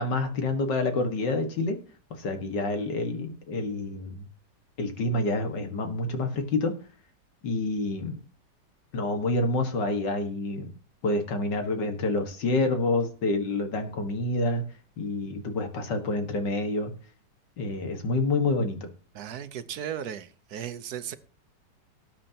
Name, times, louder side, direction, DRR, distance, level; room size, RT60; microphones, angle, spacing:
voice 1, 0.0-1.8 2.1-4.3 4.8-6.7 7.4-8.2 8.9-10.7 11.0-14.6 15.0-16.9 17.6-18.9, left 2 dB, 85° left, 6 dB, 2.3 m, -28 dB
voice 2, 19.1-21.1, right 9 dB, 65° right, 12 dB, 1.3 m, -36 dB
19.0 x 8.7 x 2.9 m, 0.38 s
omnidirectional pair, 1.8 m